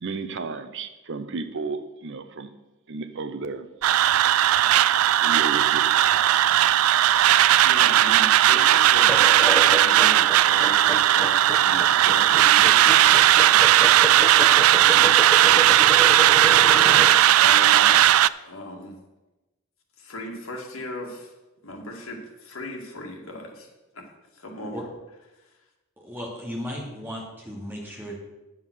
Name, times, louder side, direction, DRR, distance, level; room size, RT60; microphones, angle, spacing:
voice 1, 0.0-2.5 2.9-3.7 5.2-5.9, right 3 dB, 60° right, 0.8 m, -33 dB
sound 1, 3.8-18.3, right 12 dB, 80° right, 0.3 m, -17 dB
voice 2, 7.6-15.7 16.8-18.0 18.4-19.0 20.0-21.3 21.6-23.7 23.9-24.1 24.3-24.9, left 1 dB, 65° left, 2.1 m, -38 dB
sound 2, 9.0-17.2, equal, 5° left, 0.8 m, -31 dB
voice 3, 26.0-28.1, equal, 10° right, 2.5 m, -35 dB
9.7 x 7.4 x 6.4 m
head